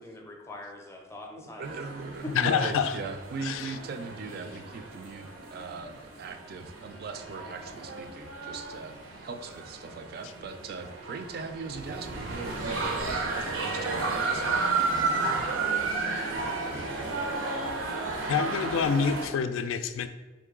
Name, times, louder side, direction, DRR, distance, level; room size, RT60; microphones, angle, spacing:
voice 1, 0.0-1.7 2.2-2.5 16.0-16.6 17.2-17.6, left 1 dB, 15° left, 1 dB, 0.5 m, -43 dB
voice 2, 1.4-14.5, right 4 dB, 50° right, 7 dB, 0.3 m, -40 dB
sound 1, 1.6-19.3, right 3 dB, 90° right, 0.7 m, -33 dB
voice 3, 2.4-2.9 3.4-3.7 18.3-20.1, left 6 dB, 85° left, 11 dB, 0.3 m, -27 dB
3.7 x 3.0 x 3.6 m, 1.2 s
head